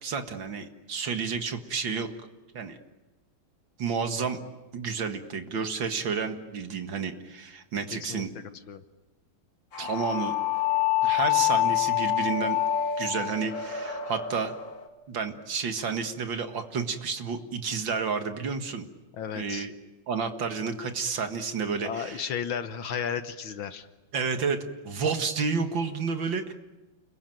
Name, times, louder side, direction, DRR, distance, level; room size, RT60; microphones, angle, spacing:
voice 1, 0.0-2.1 2.5-2.8 3.8-4.4 4.7-8.3 9.8-10.4 11.0-12.6 13.0-14.5 15.1-18.8 19.3-19.7 20.1-22.3 24.1-26.5, right 5 dB, 60° right, 7 dB, 2.4 m, -30 dB
voice 2, 7.9-8.8 19.1-19.7 21.8-23.9, left 7 dB, 65° left, 10 dB, 1.9 m, -34 dB
sound 1, 9.7-14.9, left 12 dB, 35° left, 2.0 m, -27 dB
29.5 x 21.5 x 9.2 m, 1.1 s
omnidirectional pair, 2.4 m